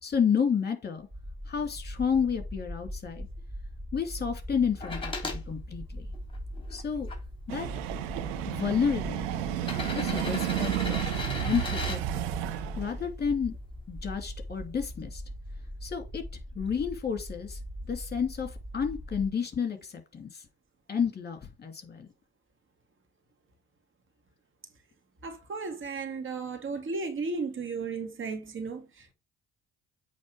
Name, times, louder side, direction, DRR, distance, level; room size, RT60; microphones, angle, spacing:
voice 1, 0.0-1.1 1.5-3.3 3.9-6.1 6.7-7.1 7.5-7.7 8.5-9.5 10.0-11.0 11.4-12.2 12.8-13.6 13.9-15.2 15.8-16.2 16.5-17.6 17.9-20.5 20.9-22.1, left 6 dB, 35° left, 2.5 m, -30 dB
sound 1, 1.0-19.3, equal, 25° right, 1.9 m, -41 dB
sound 2, 4.8-5.4 6.1-7.2 8.2-8.3 9.5-12.0 13.9-14.0, left 3 dB, 15° left, 3.6 m, -37 dB
sound 3, 7.5-13.0, right 13 dB, 75° right, 0.9 m, -32 dB
voice 2, 25.2-29.1, right 4 dB, 40° right, 2.2 m, -35 dB
8.5 x 3.6 x 4.9 m
hypercardioid pair, 55°, 30 cm